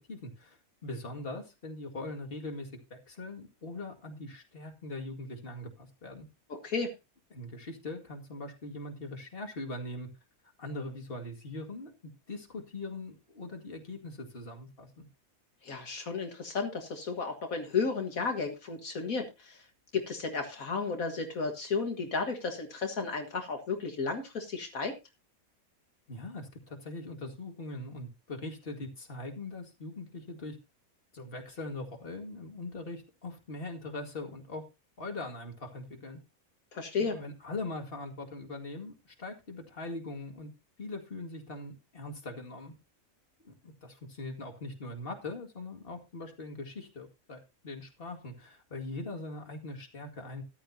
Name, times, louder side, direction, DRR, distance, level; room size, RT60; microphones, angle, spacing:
voice 1, 0.1-6.3 7.3-10.1 10.6-11.9 12.3-15.1 26.1-30.6 31.1-34.6 35.0-36.2 37.0-40.5 40.8-42.7 43.4-47.4 47.6-50.4, left 2 dB, 40° left, 2 dB, 2.4 m, -41 dB
voice 2, 6.5-6.9 15.6-19.6 19.9-24.9 36.7-37.2, left 4 dB, 70° left, 4 dB, 2.0 m, -33 dB
14.0 x 11.5 x 2.8 m, 0.25 s
omnidirectional pair, 1.5 m